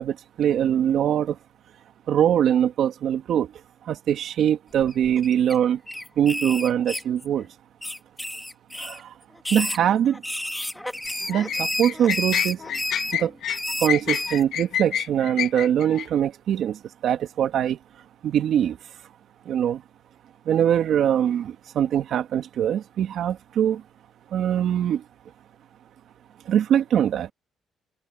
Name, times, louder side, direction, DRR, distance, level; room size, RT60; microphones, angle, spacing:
voice 1, 0.0-1.4 2.1-3.5 3.9-5.8 6.2-7.5 8.8-9.1 9.5-10.2 11.3-12.6 13.1-13.3 13.8-17.8 18.2-18.8 19.5-19.8 20.5-23.8 24.3-25.0 26.5-27.3, right 9 dB, 70° right, 2.4 m, -22 dB
sound 1, 4.8-5.5 5.9-7.4 7.8-9.0 9.4-14.4, left 1 dB, 5° left, 2.9 m, -31 dB
sound 2, 11.0-16.1, left 10 dB, 75° left, 0.8 m, -28 dB
cardioid pair, 90°, 0 cm